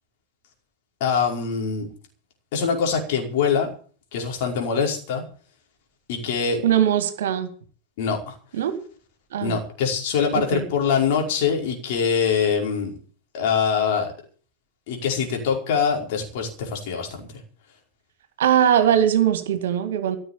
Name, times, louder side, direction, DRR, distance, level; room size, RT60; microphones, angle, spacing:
voice 1, 1.0-1.9 2.5-3.7 4.1-5.2 6.1-6.6 8.0-8.4 9.4-12.9 13.3-14.1 14.9-17.3, left 6 dB, 50° left, 1 dB, 5.2 m, -23 dB
voice 2, 6.6-7.5 8.5-8.8 9.3-9.5 10.3-10.7 18.4-20.2, right 10 dB, 60° right, 10 dB, 2.2 m, -20 dB
15.5 x 7.8 x 9.0 m, 0.44 s
figure-of-eight pair, 90°, 0 cm